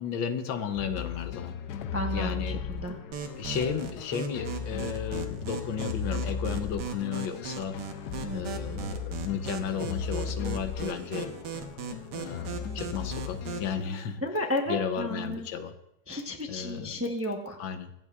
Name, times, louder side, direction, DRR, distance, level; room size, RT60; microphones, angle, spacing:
voice 1, 0.0-1.6 2.1-2.6 3.4-7.7 8.3-11.3 12.1-14.2 14.7-15.7 16.5-16.9 17.6-17.9, left 7 dB, 90° left, 8 dB, 1.6 m, -33 dB
sound 1, 0.7-13.8, left 6 dB, 70° left, 1.0 m, -37 dB
voice 2, 1.9-3.0 8.2-8.9 14.2-15.5 16.1-17.6, left 1 dB, 15° right, 2 dB, 0.5 m, -33 dB
sound 2, 3.1-13.7, right 6 dB, 65° right, 1.5 m, -38 dB
23.5 x 8.2 x 2.4 m, 0.83 s
omnidirectional pair, 2.1 m